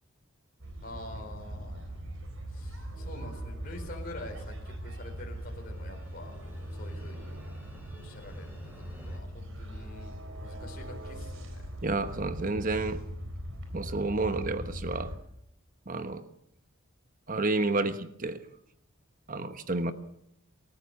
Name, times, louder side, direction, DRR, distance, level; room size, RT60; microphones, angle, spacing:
sound 1, 0.6-15.2, equal, 60° right, 4.1 m, -40 dB
voice 1, 0.8-2.1 2.5-7.5 7.9-8.6 9.0-11.4 17.8-18.0, left 1 dB, 40° left, 2 dB, 4.4 m, -46 dB
sound 2, 4.7-9.2, right 1 dB, 10° right, 5.7 m, -46 dB
voice 2, 11.8-13.0 13.7-15.1 15.9-16.2 17.3-18.4 19.3-19.9, right 2 dB, 35° right, 10 dB, 1.2 m, -30 dB
28.0 x 14.0 x 7.1 m, 0.75 s
head